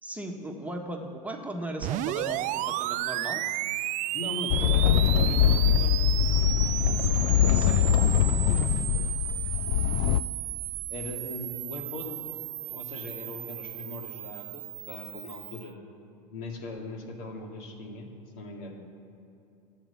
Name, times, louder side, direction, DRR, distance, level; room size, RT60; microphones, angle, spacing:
voice 1, 0.0-3.4 7.5-7.9, right 1 dB, 5° right, 1 dB, 1.3 m, -37 dB
sound 1, 1.8-15.7, right 16 dB, 40° right, 0.4 m, -34 dB
voice 2, 4.1-5.9 8.5-8.7 10.9-12.2 12.7-15.7 16.3-18.1 18.4-18.7, left 2 dB, 65° left, 1 dB, 2.4 m, -39 dB
sound 2, 4.5-10.2, left 10 dB, 50° left, 0.5 m, -23 dB
13.0 x 8.2 x 7.1 m, 2.8 s
hypercardioid pair, 90°, 20 cm